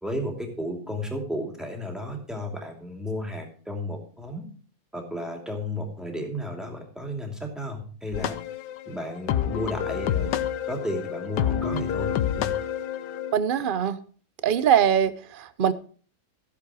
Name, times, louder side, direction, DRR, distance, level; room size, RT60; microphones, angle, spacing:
voice 1, 0.0-4.4 4.9-8.3 8.9-10.3 10.7-12.5, left 1 dB, ahead, 2 dB, 2.6 m, -33 dB
sound 1, 8.1-13.3, left 10 dB, 75° left, 1.3 m, -28 dB
voice 2, 13.3-14.0 14.4-15.7, right 8 dB, 60° right, 14 dB, 0.5 m, -22 dB
14.5 x 7.5 x 4.8 m, 0.42 s
omnidirectional pair, 1.9 m